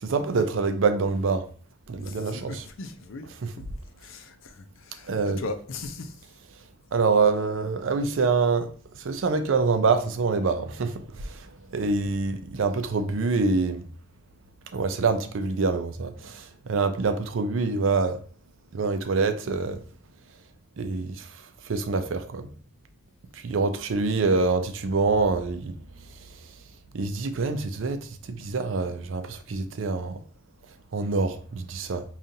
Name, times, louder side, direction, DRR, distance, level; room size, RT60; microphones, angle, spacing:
voice 1, 0.0-1.5 1.9-2.7 3.4-3.5 5.1-5.4 6.9-8.7 9.0-11.4 11.7-13.8 14.7-18.2 18.7-19.8 20.8-21.3 21.7-22.5 23.4-25.7 26.9-30.2 30.9-32.0, right 4 dB, 80° right, 0.5 m, -25 dB
voice 2, 1.9-3.3 4.0-6.1, left 3 dB, 85° left, 0.5 m, -38 dB
5.2 x 2.4 x 2.7 m
head